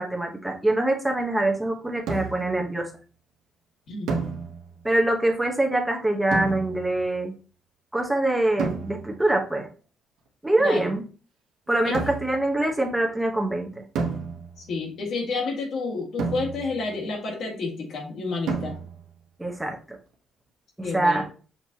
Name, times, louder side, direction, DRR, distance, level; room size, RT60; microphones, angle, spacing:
voice 1, 0.0-2.9 4.8-7.3 7.9-9.7 10.4-11.0 11.7-13.8 19.4-20.0 20.8-21.2, right 1 dB, 10° right, 1 dB, 0.9 m, -24 dB
sound 1, 2.1-2.6 4.1-4.9 6.3-7.1 8.6-9.3 11.9-12.5 14.0-14.8 16.2-17.0 18.5-19.2, right 5 dB, 85° right, 1.0 m, -31 dB
voice 2, 3.9-4.2 10.6-10.9 14.6-18.7 20.8-21.2, left 3 dB, 70° left, 0 dB, 1.8 m, -30 dB
5.9 x 3.2 x 2.8 m, 0.39 s
cardioid pair, 90°, 0 cm